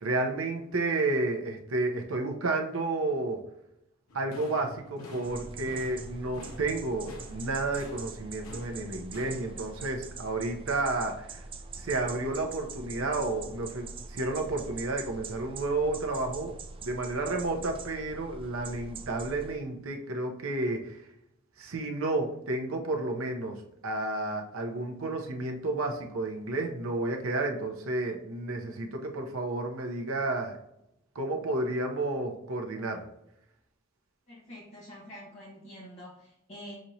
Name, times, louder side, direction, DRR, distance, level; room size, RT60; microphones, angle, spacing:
voice 1, 0.0-3.4 4.1-11.4 11.8-16.5 16.8-21.0 21.6-30.6 31.1-33.0, right 2 dB, 75° right, 3 dB, 0.7 m, -31 dB
sound 1, 4.1-9.8, left 1 dB, 85° left, 1.0 m, -47 dB
sound 2, 5.2-19.6, right 4 dB, 25° right, 0.4 m, -44 dB
voice 2, 34.3-36.7, equal, 35° left, -7 dB, 1.2 m, -46 dB
6.2 x 2.9 x 2.7 m, 0.80 s
head